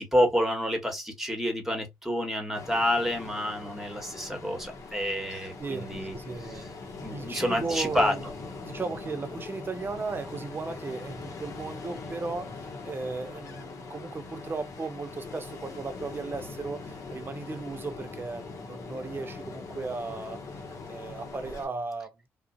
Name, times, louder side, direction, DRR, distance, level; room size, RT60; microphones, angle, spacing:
voice 1, 0.0-6.7 7.0-8.1, equal, 5° right, 1.3 m, -28 dB
Ocean, 2.5-21.7, left 4 dB, 65° left, 0.7 m, -42 dB
voice 2, 5.6-6.7 7.1-8.2 8.6-20.6 20.9-22.3, right 4 dB, 35° right, 0.6 m, -36 dB
2.5 x 2.1 x 2.5 m
supercardioid pair, 50°, 6 cm